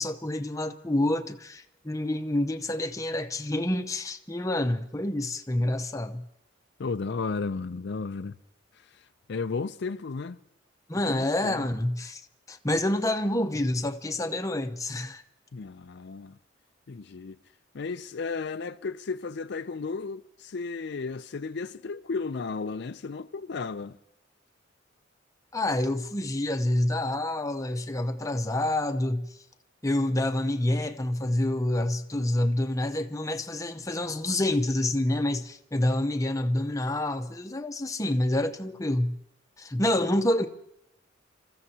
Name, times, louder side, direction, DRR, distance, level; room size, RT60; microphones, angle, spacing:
voice 1, 0.0-6.2 10.9-12.2 12.5-15.2 25.5-29.4 29.8-39.2 39.6-40.5, left 1 dB, 15° left, 0.8 m, -27 dB
voice 2, 6.8-8.4 9.3-10.4 11.0-11.6 15.5-16.4 16.9-17.4 17.7-24.0, left 4 dB, 55° left, 0.4 m, -34 dB
29.0 x 15.0 x 2.8 m
head